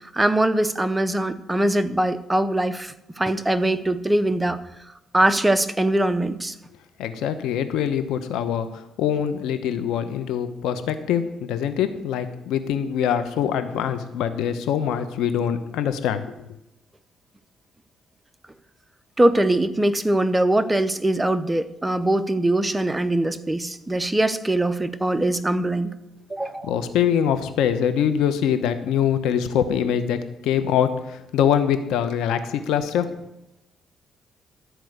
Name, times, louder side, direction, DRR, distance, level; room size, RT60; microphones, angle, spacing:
voice 1, 0.1-4.6 5.1-6.5 19.2-25.9 26.3-26.7, right 1 dB, 15° right, 11 dB, 0.7 m, -22 dB
voice 2, 7.0-16.3 26.6-33.2, left 9 dB, 90° left, 10 dB, 1.0 m, -24 dB
13.0 x 4.7 x 7.9 m, 0.87 s
cardioid pair, 90°, 0 cm